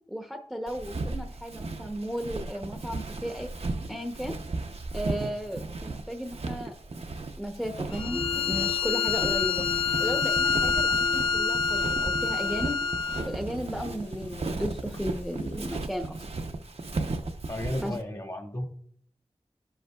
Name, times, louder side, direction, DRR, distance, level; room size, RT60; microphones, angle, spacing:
voice 1, 0.1-3.5 3.9-4.4 4.9-6.7 7.4-9.7 10.0-12.8 13.3-16.2 17.8-18.0, equal, ahead, 4 dB, 0.7 m, -35 dB
Walk footsteps, 0.7-18.0, right 3 dB, 70° right, 0.7 m, -36 dB
Bowed string instrument, 7.9-13.3, left 5 dB, 65° left, 1.2 m, -27 dB
sound 1, 8.1-15.6, left 5 dB, 80° left, 2.4 m, -40 dB
voice 2, 17.5-18.7, left 1 dB, 35° left, 3 dB, 1.3 m, -33 dB
9.3 x 7.8 x 2.3 m, 0.62 s
wide cardioid pair, 45°, 11 cm